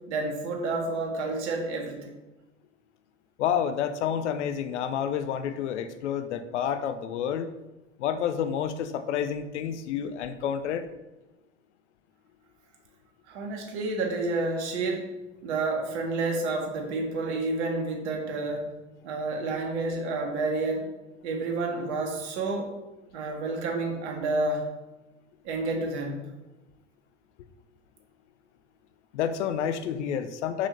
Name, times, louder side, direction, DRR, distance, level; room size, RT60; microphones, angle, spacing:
voice 1, 0.1-2.1 13.3-15.1 15.4-18.7 19.0-20.9 21.2-22.7 23.1-24.6 25.4-26.2, right 3 dB, 60° right, 2 dB, 1.8 m, -29 dB
voice 2, 3.4-7.5 8.0-10.8 29.1-30.7, left 8 dB, 65° left, 11 dB, 0.7 m, -29 dB
6.5 x 6.0 x 5.3 m, 1.1 s
figure-of-eight pair, 70°, 38 cm